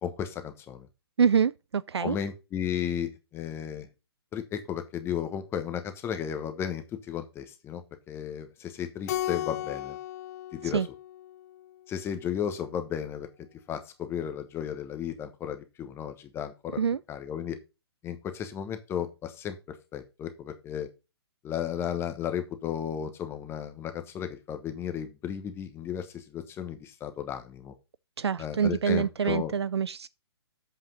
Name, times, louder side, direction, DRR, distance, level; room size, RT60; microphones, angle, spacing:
voice 1, 0.0-0.9 2.0-3.9 4.3-7.8 8.1-10.0 10.5-10.8 11.9-13.3 13.7-16.8 17.1-17.6 18.0-20.9 21.4-27.7 28.4-29.5, left 9 dB, 15° left, 1.1 m, -34 dB
voice 2, 1.2-2.2 10.6-10.9 16.8-17.0 28.2-30.1, right 7 dB, 75° right, 0.4 m, -26 dB
Keyboard (musical), 9.1-11.7, left 13 dB, 35° left, 0.5 m, -35 dB
8.0 x 5.6 x 5.4 m
figure-of-eight pair, 125°, 14 cm